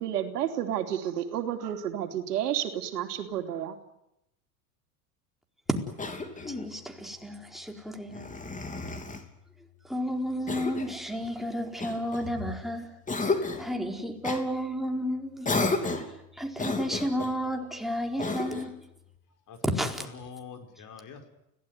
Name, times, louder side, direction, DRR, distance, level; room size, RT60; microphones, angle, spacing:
voice 1, 0.0-3.8, right 10 dB, 85° right, 6 dB, 3.2 m, -31 dB
Cough, 6.0-6.7 8.1-9.3 10.5-11.0 11.8-12.6 13.1-13.7 14.2-14.4 15.4-16.2 16.6-17.4 18.2-18.8, left 3 dB, 15° left, 3.5 m, -32 dB
voice 2, 6.5-8.2 9.9-12.9 13.6-15.5 16.4-18.7 19.6-20.1, equal, ahead, 2 dB, 4.5 m, -32 dB
voice 3, 19.5-21.3, left 6 dB, 40° left, 6 dB, 5.2 m, -45 dB
29.5 x 18.0 x 9.6 m, 0.84 s
hypercardioid pair, 100°, 46 cm